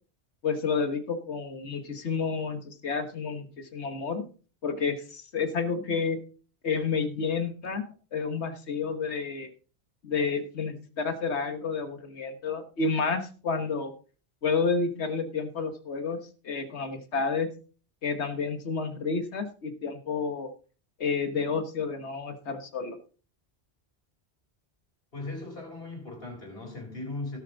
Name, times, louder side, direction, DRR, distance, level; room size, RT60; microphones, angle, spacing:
voice 1, 0.4-4.2 4.6-6.2 6.6-7.8 8.1-9.5 10.0-13.9 14.4-16.2 16.4-17.5 18.0-20.5 21.0-23.0, left 5 dB, 85° left, 1.6 m, -30 dB
voice 2, 25.1-27.4, left 2 dB, 60° left, 4.7 m, -38 dB
17.0 x 6.9 x 3.9 m
omnidirectional pair, 1.1 m